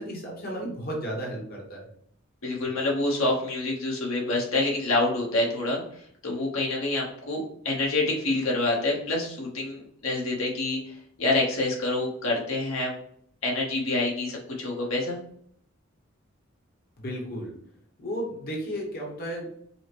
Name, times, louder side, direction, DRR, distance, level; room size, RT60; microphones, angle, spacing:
voice 1, 0.0-1.8 17.0-17.5 18.0-19.5, equal, 45° left, -2 dB, 1.0 m, -33 dB
voice 2, 2.4-12.9 13.4-15.2, left 2 dB, 70° left, -2 dB, 1.0 m, -27 dB
5.5 x 2.1 x 3.0 m, 0.65 s
head